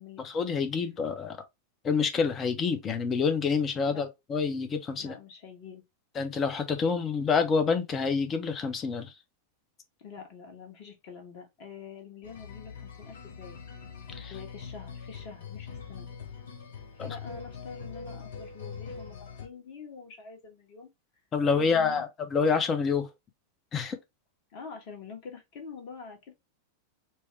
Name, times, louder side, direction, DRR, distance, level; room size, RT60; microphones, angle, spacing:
voice 1, 0.2-1.4 1.8-5.1 6.1-9.1 14.1-14.3 17.0-17.1 21.3-23.1 23.7-24.0, left 5 dB, 25° left, 0.8 m, -27 dB
voice 2, 5.0-5.8 10.0-13.6 14.3-16.1 16.9-20.9 21.5-22.0 24.5-26.3, left 5 dB, 45° left, 1.4 m, -46 dB
sound 1, 12.2-19.5, left 6 dB, 60° left, 0.9 m, -43 dB
4.4 x 2.2 x 3.2 m
figure-of-eight pair, 90°, 0 cm